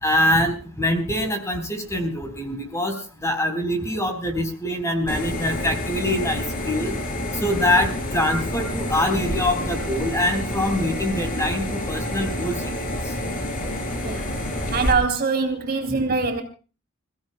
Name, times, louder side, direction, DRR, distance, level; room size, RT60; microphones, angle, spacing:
voice 1, 0.0-2.9 3.2-6.9 7.4-12.6, left 1 dB, 15° left, 4.1 m, -24 dB
sound 1, 5.1-14.9, left 1 dB, 40° left, 3.7 m, -28 dB
voice 2, 14.7-16.4, right 4 dB, 45° right, 3.7 m, -23 dB
29.0 x 16.5 x 2.3 m
head